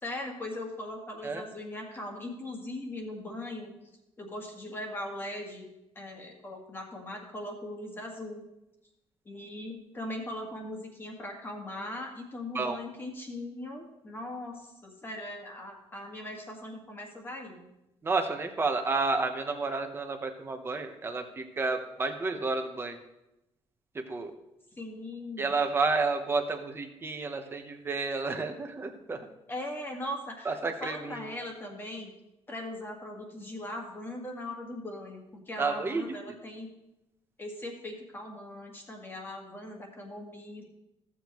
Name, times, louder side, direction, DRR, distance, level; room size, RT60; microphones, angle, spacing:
voice 1, 0.0-3.8 4.2-5.7 6.0-8.4 9.3-17.7 24.8-25.5 29.5-32.1 32.5-36.7 37.4-40.6, left 1 dB, 20° left, 1 dB, 1.7 m, -40 dB
voice 2, 18.0-23.0 23.9-24.3 25.4-29.2 30.4-31.2 35.6-36.3, right 3 dB, 25° right, 5 dB, 1.0 m, -31 dB
14.5 x 7.2 x 3.1 m, 0.91 s
cardioid pair, 140°, 10 cm